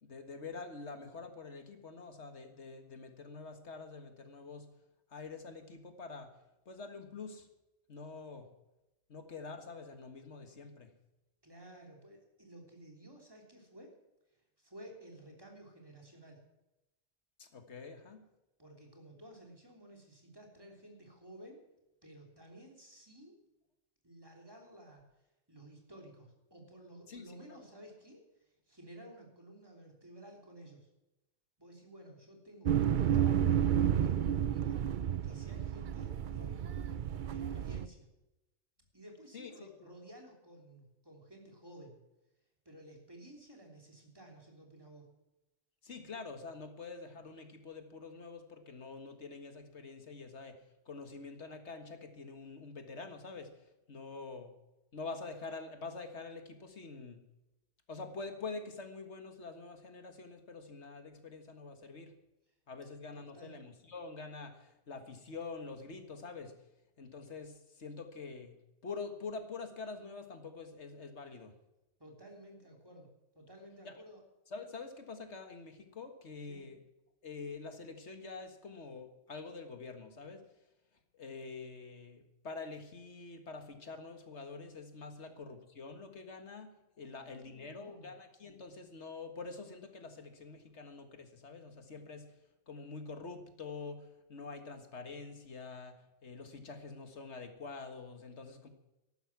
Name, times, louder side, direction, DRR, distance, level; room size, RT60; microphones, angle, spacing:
voice 1, 0.0-4.7 5.1-6.3 6.7-7.5 7.9-8.5 9.1-10.9 17.4-18.2 27.1-27.6 39.3-39.9 45.8-50.6 50.9-54.5 54.9-57.2 57.9-62.1 62.7-66.5 67.0-68.6 68.8-71.5 73.9-74.0 74.5-76.8 77.2-80.4 81.1-86.7 87.0-92.3 92.7-96.0 96.2-98.7, left 4 dB, 65° left, 6 dB, 1.9 m, -46 dB
voice 2, 11.4-13.9 14.6-16.4 18.6-21.6 22.0-23.4 24.0-25.0 25.5-30.9 31.6-36.9 37.3-38.1 38.9-42.0 42.7-45.1 63.1-63.6 72.0-73.1 73.4-74.2 76.5-76.7 85.2-85.3 87.0-88.1, right 1 dB, 20° right, 0 dB, 3.4 m, -54 dB
sound 1, 32.7-37.9, right 9 dB, 55° right, 0.6 m, -31 dB
14.0 x 12.0 x 6.1 m, 0.96 s
omnidirectional pair, 1.2 m